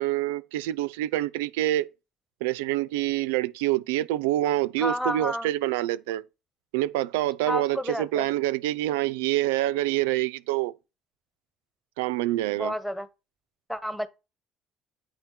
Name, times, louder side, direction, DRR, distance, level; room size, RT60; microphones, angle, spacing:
voice 1, 0.0-1.9 2.4-6.2 6.7-10.7 12.0-12.7, right 15 dB, 80° right, 0.4 m, -26 dB
voice 2, 4.8-5.5 7.5-8.3 12.5-13.1 13.7-14.1, equal, 5° left, 1.2 m, -30 dB
9.0 x 4.3 x 4.4 m
hypercardioid pair, 60°, 0 cm